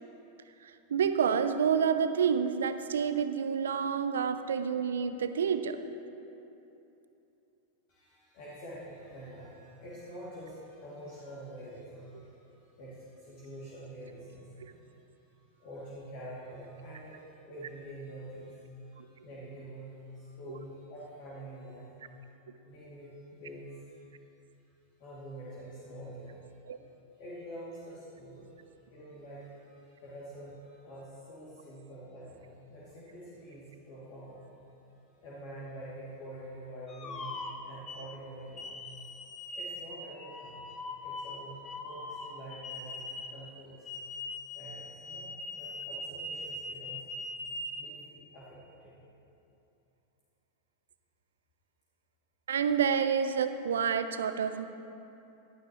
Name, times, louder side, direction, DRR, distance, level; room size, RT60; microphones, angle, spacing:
voice 1, 0.6-5.8 14.6-14.7 19.0-19.1 20.5-20.6 26.7-26.8 52.5-54.7, right 7 dB, 65° right, 10 dB, 0.7 m, -29 dB
voice 2, 7.9-22.3 22.6-24.0 25.0-26.8 27.2-34.5 35.2-39.0 39.5-40.7 41.0-44.0 44.5-47.0 47.7-49.0, right 1 dB, 50° left, -9 dB, 2.9 m, -47 dB
sound 1, 36.9-38.0 38.6-43.4 43.9-47.8, left 2 dB, 25° left, 1.3 m, -41 dB
17.0 x 12.5 x 3.2 m, 2.9 s
figure-of-eight pair, 90°, 0 cm